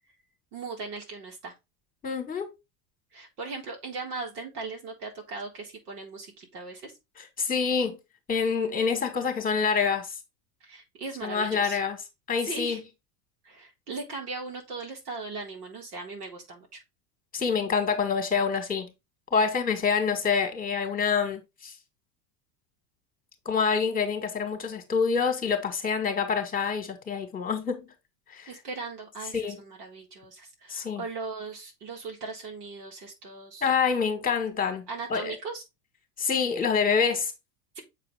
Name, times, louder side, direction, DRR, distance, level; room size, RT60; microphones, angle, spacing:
voice 1, 0.5-1.5 3.1-6.9 10.6-11.8 12.4-12.8 13.4-16.8 28.5-33.7 34.9-35.6, right 4 dB, 85° right, 4.0 m, -38 dB
voice 2, 2.0-2.5 7.4-8.0 8.3-10.1 11.2-12.0 12.3-12.8 17.3-18.9 19.3-21.7 23.5-27.9 28.3-28.5 29.3-29.6 30.7-31.0 33.6-35.4 36.2-37.3, left 5 dB, 20° left, 1.7 m, -26 dB
7.2 x 4.5 x 3.4 m
supercardioid pair, 130°, 46 cm